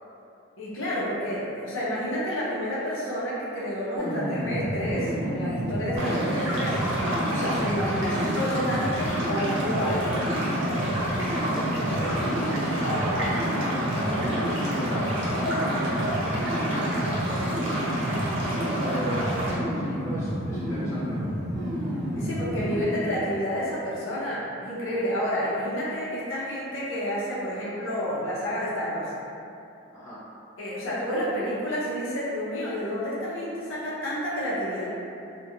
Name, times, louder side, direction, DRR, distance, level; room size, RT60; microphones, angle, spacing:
voice 1, 0.6-6.8 7.3-10.3 22.1-29.1 30.6-34.9, equal, 70° left, -8 dB, 0.6 m, -29 dB
sound 1, 4.0-22.8, equal, 20° right, 0.5 m, -30 dB
sound 2, 6.0-19.5, right 1 dB, 65° right, 0.6 m, -30 dB
voice 2, 11.0-15.7 16.2-17.8 18.7-21.2 29.9-30.2, equal, 15° left, -14 dB, 0.8 m, -36 dB
2.3 x 2.1 x 3.0 m, 2.7 s
head